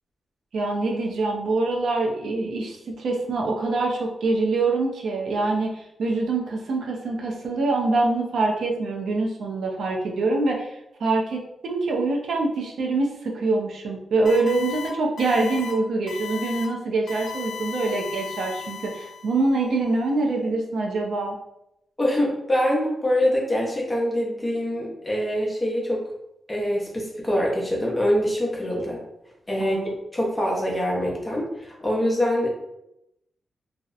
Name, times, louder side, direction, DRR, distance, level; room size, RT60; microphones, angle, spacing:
voice 1, 0.5-21.4 29.6-29.9, right 3 dB, 75° right, 0 dB, 0.5 m, -25 dB
sound 1, 14.3-14.9 15.2-15.7 16.1-16.7 17.1-19.4, left 6 dB, 55° left, 0.6 m, -36 dB
voice 2, 22.0-26.0 26.5-29.0 29.5-32.5, equal, 15° left, -3 dB, 0.6 m, -24 dB
2.7 x 2.0 x 2.4 m, 0.84 s
wide cardioid pair, 150°, 0 cm